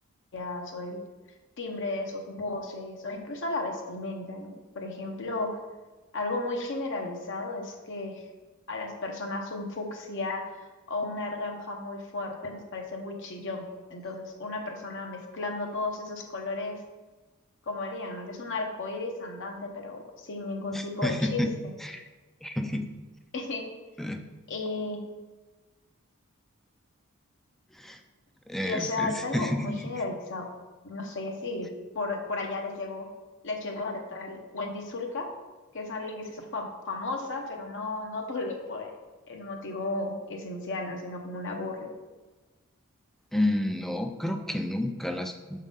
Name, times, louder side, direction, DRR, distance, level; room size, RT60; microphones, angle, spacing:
voice 1, 0.3-1.0 1.6-5.6 6.1-8.3 8.7-16.8 17.7-21.7 23.3-23.7 24.5-25.1 28.6-30.5 30.8-33.1 33.4-35.3 35.7-39.0 39.3-41.9, left 2 dB, 60° left, 2 dB, 0.8 m, -34 dB
voice 2, 20.7-21.5 21.8-22.1 22.4-22.9 24.0-24.2 27.7-28.0 28.5-29.9 43.3-45.6, left 1 dB, ahead, 6 dB, 0.3 m, -30 dB
6.2 x 3.8 x 5.3 m, 1.2 s
head